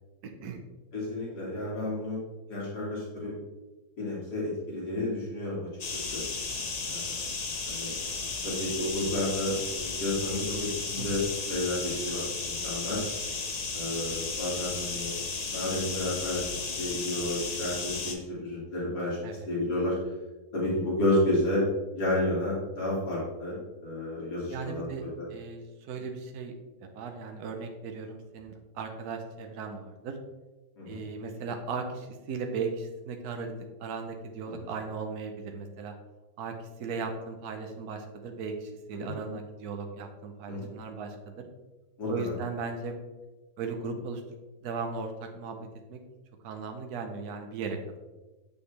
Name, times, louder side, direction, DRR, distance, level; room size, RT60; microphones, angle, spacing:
voice 1, 0.2-0.6 11.0-11.1 19.2-19.5 24.5-26.5 26.8-30.2 30.9-35.9 36.4-41.5 42.1-43.0 43.6-44.2 44.6-46.0 46.4-48.0, right 4 dB, 70° right, 4 dB, 1.3 m, -37 dB
voice 2, 0.9-2.2 2.5-3.3 4.0-6.2 6.9-7.2 7.7-7.9 8.4-11.2 11.5-13.0 13.7-15.2 15.5-16.5 16.8-19.2 19.5-20.0 20.5-21.6 21.9-23.6 23.8-24.9 25.2-25.3 30.8-31.0 38.9-39.1 40.5-40.7 42.0-42.1, left 1 dB, 70° left, -7 dB, 2.8 m, -31 dB
sound 1, 5.8-18.1, left 4 dB, 45° left, 0.5 m, -34 dB
7.6 x 6.9 x 3.3 m, 1.2 s
omnidirectional pair, 1.8 m